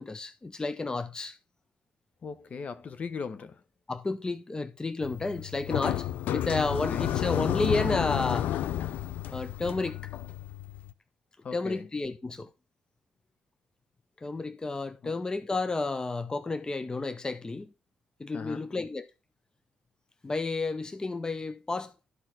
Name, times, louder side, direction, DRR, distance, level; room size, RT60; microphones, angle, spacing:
voice 1, 0.0-1.4 3.9-6.1 6.3-8.5 9.3-10.1 11.5-12.5 14.2-17.7 18.2-19.1 20.2-21.9, left 3 dB, 25° left, 0.6 m, -31 dB
voice 2, 2.2-3.6 6.8-7.1 11.4-11.9 18.3-18.7, left 5 dB, 50° left, 0.9 m, -38 dB
sound 1, 5.0-10.9, left 12 dB, 75° left, 0.5 m, -31 dB
12.5 x 4.5 x 3.8 m
supercardioid pair, 55°, 3 cm